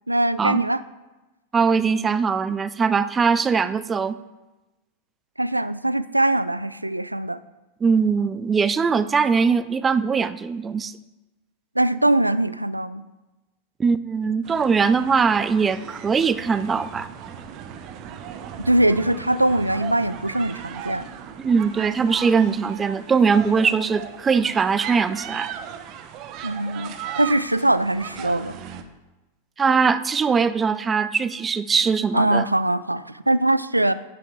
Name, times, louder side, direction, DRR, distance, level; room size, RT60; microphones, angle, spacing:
voice 1, 0.1-0.8 5.4-7.4 11.8-13.1 18.6-21.1 26.4-28.6 32.1-33.9, right 1 dB, 85° right, 16 dB, 0.4 m, -22 dB
voice 2, 1.5-4.2 7.8-10.9 13.8-17.1 21.4-25.5 29.6-32.5, right 5 dB, 20° right, 15 dB, 0.5 m, -21 dB
sound 1, 14.4-28.8, right 8 dB, 40° right, 0.9 m, -37 dB
9.7 x 8.9 x 4.7 m, 1.1 s
figure-of-eight pair, 90°, 0 cm